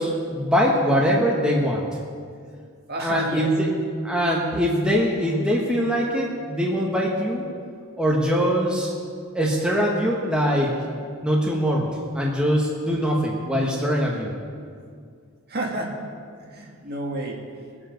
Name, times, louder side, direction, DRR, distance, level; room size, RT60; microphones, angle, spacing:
voice 1, 0.0-1.9 3.0-3.7 4.0-7.4 8.0-9.0 9.3-10.7 11.2-14.4, equal, 5° right, -3 dB, 1.3 m, -22 dB
voice 2, 2.9-3.5 15.5-16.2 16.4-17.4, right 1 dB, 45° right, 0 dB, 1.8 m, -30 dB
20.5 x 7.8 x 5.2 m, 2.1 s
head